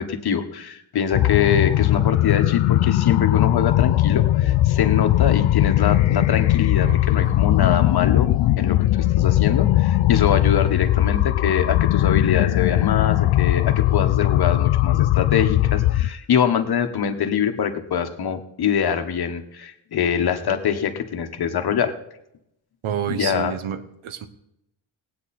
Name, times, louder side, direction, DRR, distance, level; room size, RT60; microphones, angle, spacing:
voice 1, 0.0-8.3 8.6-21.9 23.1-23.5, left 8 dB, 50° left, 7 dB, 1.3 m, -24 dB
sound 1, 1.1-16.1, left 14 dB, 75° left, 0.5 m, -19 dB
voice 2, 22.8-24.3, right 9 dB, 85° right, 11 dB, 1.2 m, -29 dB
18.5 x 9.0 x 4.3 m, 0.80 s
wide cardioid pair, 135°, 48 cm